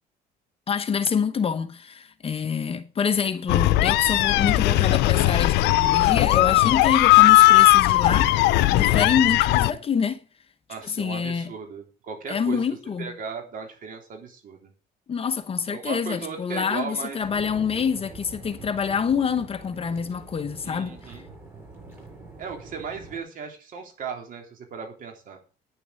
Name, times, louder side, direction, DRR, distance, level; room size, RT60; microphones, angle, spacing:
voice 1, 0.7-10.2 10.8-11.5 12.3-13.1 15.1-21.2, left 6 dB, 35° left, 1.0 m, -26 dB
sound 1, 3.5-9.7, left 17 dB, 90° left, 0.7 m, -18 dB
voice 2, 10.7-12.6 13.0-14.7 15.7-17.2 20.6-21.2 22.4-25.4, right 6 dB, 55° right, 3.6 m, -36 dB
sound 2, 17.2-23.2, right 2 dB, 15° right, 6.7 m, -44 dB
10.0 x 7.0 x 7.7 m
cardioid pair, 110°, 17 cm